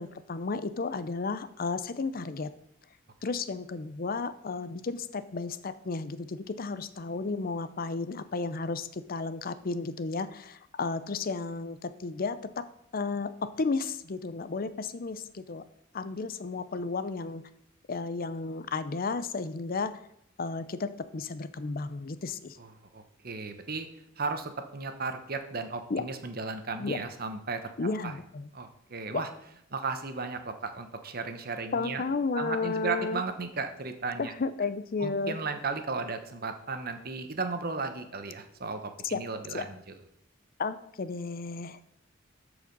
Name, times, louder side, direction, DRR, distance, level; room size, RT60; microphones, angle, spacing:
voice 1, 0.0-2.5 3.2-12.7 12.9-15.6 15.9-17.4 17.9-20.0 20.4-22.6 25.9-26.0 26.8-27.0 27.8-28.5 29.1-29.2 31.7-33.2 34.2-35.4 39.1-39.2 39.5-39.7 40.6-41.8, left 4 dB, 50° left, 13 dB, 0.6 m, -33 dB
voice 2, 22.9-23.9 24.2-27.7 28.0-28.1 28.5-29.3 29.7-32.0 32.3-34.3 35.0-39.8, right 4 dB, 50° right, 7 dB, 1.0 m, -35 dB
13.5 x 5.0 x 5.3 m, 0.75 s
head